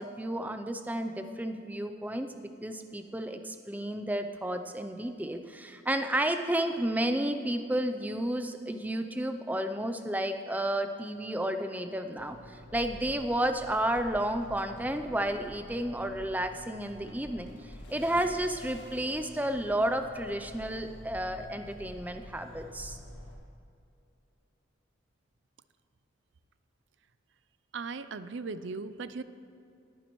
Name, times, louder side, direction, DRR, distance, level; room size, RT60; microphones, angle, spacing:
voice 1, 0.0-23.0, right 1 dB, 10° right, 7 dB, 0.5 m, -32 dB
sound 1, 12.2-23.3, left 1 dB, 70° left, 1.9 m, -48 dB
voice 2, 27.7-29.2, right 4 dB, 65° right, 13 dB, 0.5 m, -37 dB
21.0 x 9.4 x 3.1 m, 2.7 s
head